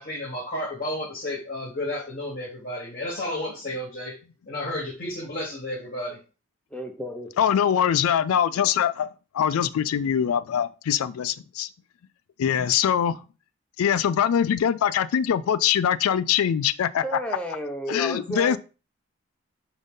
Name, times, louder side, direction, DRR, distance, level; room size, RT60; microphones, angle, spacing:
voice 1, 0.0-4.1 4.5-6.2, left 1 dB, 40° left, 1.0 m, -32 dB
voice 2, 6.7-7.3 17.0-18.6, right 1 dB, 5° left, 0.6 m, -32 dB
voice 3, 7.4-9.1 9.3-11.7 12.4-13.2 13.8-17.0 17.9-18.6, left 9 dB, 80° left, 0.3 m, -23 dB
5.2 x 2.7 x 3.6 m
head